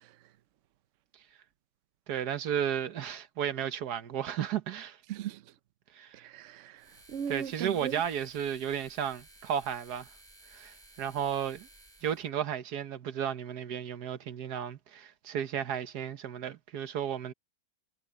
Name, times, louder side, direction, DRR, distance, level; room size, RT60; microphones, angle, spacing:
voice 1, 2.1-5.0 5.9-6.3 7.3-10.1 10.5-11.7 12.0-17.3, right 9 dB, 55° right, 1.4 m, -33 dB
voice 2, 5.1-5.4 6.2-7.9, right 9 dB, 85° right, 0.6 m, -37 dB
sound 1, 6.8-12.3, right 1 dB, 20° right, 7.6 m, -56 dB
omnidirectional pair, 2.2 m